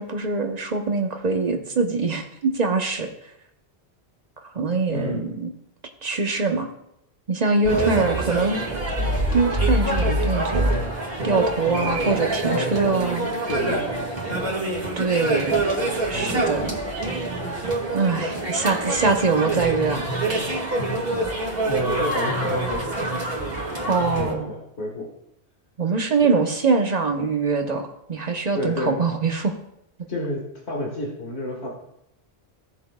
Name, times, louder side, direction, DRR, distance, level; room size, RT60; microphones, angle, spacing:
voice 1, 0.0-3.1 4.5-5.5 6.0-6.7 7.3-8.6 9.3-10.7 11.2-13.3 15.0-15.7 16.1-16.7 17.9-20.1 23.9-24.5 25.8-27.8 28.1-29.6, right 4 dB, 40° right, 4 dB, 1.0 m, -23 dB
voice 2, 4.9-5.3 7.7-8.0 11.8-12.0 12.4-12.7 13.5-14.0 16.1-16.5 21.6-22.9 23.8-25.1 26.2-26.3 28.5-29.0 30.1-31.7, left 1 dB, 85° left, -2 dB, 2.0 m, -30 dB
sound 1, 7.6-24.3, right 2 dB, 60° right, 2.3 m, -25 dB
17.0 x 7.3 x 2.3 m, 0.79 s
omnidirectional pair, 1.1 m